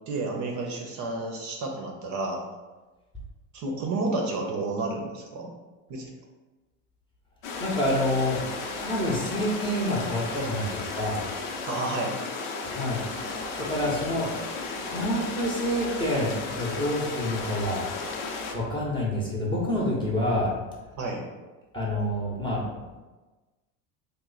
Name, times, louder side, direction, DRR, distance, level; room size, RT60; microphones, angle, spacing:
voice 1, 0.1-2.4 3.5-5.5 5.9-6.1 11.6-12.2 21.0-21.2, right 2 dB, 45° right, 0 dB, 0.7 m, -30 dB
sound 1, 7.4-18.5, left 3 dB, 65° left, 0.7 m, -34 dB
voice 2, 7.6-8.4 8.8-11.2 12.6-14.3 14.9-17.9 18.5-20.5 21.7-22.9, left 1 dB, 10° left, -5 dB, 0.7 m, -28 dB
3.1 x 2.1 x 3.9 m, 1.2 s
supercardioid pair, 125°, 40 cm